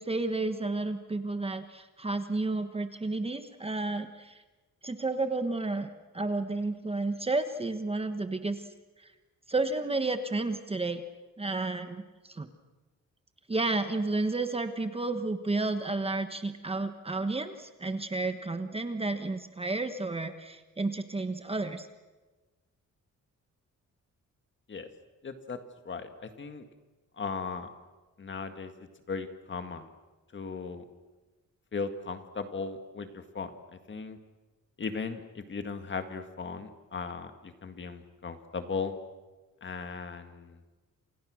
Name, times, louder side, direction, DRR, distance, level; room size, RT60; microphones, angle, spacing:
voice 1, 0.0-4.4 4.8-8.7 9.0-9.1 9.5-11.0 11.4-12.5 13.5-21.9, right 3 dB, 20° right, 8 dB, 1.2 m, -31 dB
voice 2, 25.2-25.6 25.8-26.7 27.2-27.7 28.2-28.7 29.1-29.9 30.3-30.8 31.7-33.5 33.9-34.2 34.8-38.9 39.6-40.6, left 5 dB, 35° left, 7 dB, 2.0 m, -37 dB
28.5 x 28.0 x 6.4 m, 1.2 s
wide cardioid pair, 175°, 32 cm